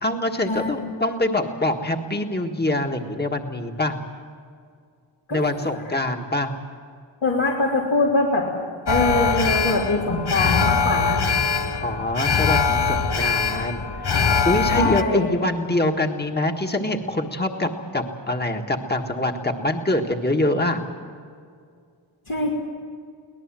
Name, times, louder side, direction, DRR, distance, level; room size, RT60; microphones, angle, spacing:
voice 1, 0.0-4.0 5.3-6.5 11.7-20.8, left 1 dB, 20° left, 3 dB, 1.7 m, -25 dB
voice 2, 7.2-8.5 8.9-11.2 14.7-15.3 22.3-22.5, left 2 dB, 75° left, -6 dB, 3.4 m, -22 dB
Alarm, 8.9-15.0, left 5 dB, 55° left, 1.1 m, -22 dB
23.5 x 18.5 x 7.6 m, 2.2 s
wide cardioid pair, 80°, 48 cm